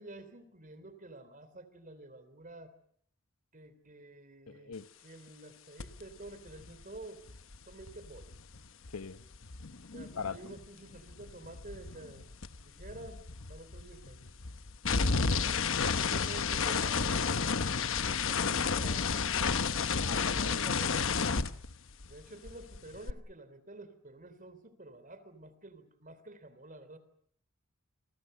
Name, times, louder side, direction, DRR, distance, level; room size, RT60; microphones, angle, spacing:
voice 1, 0.0-2.7 3.5-7.3 7.7-8.3 9.9-14.3 15.8-17.5 18.0-19.3 20.3-21.2 22.1-27.0, right 2 dB, 40° right, 3.3 m, -50 dB
voice 2, 4.5-4.9 8.9-9.2 9.6-9.7 10.1-10.4 19.9-20.8, left 5 dB, 85° left, 1.1 m, -40 dB
sound 1, 5.8-6.0 6.3-10.7 10.9-22.2 22.5-23.1, left 5 dB, 60° left, 1.1 m, -32 dB
28.5 x 23.5 x 6.7 m
head